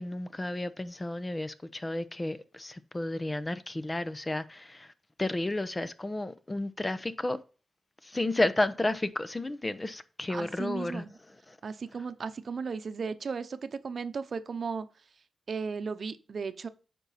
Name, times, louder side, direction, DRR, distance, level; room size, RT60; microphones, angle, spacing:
voice 1, 0.0-4.9 5.2-7.4 8.0-11.0 11.5-11.6, left 2 dB, 25° left, 0.8 m, -32 dB
voice 2, 10.3-11.1 11.6-14.9 15.5-16.7, right 5 dB, 60° right, 0.8 m, -35 dB
9.0 x 5.4 x 4.2 m
cardioid pair, 60°, 0 cm